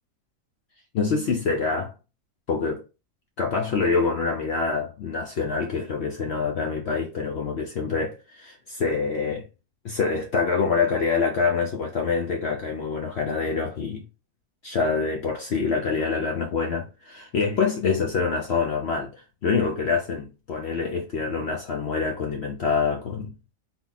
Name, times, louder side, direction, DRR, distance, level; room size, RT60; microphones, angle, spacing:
voice 1, 0.9-1.9 2.5-2.8 3.4-9.5 9.8-14.1 14.6-19.1 19.4-23.5, left 5 dB, 65° left, 0.6 m, -26 dB
3.8 x 2.2 x 3.9 m
omnidirectional pair, 1.7 m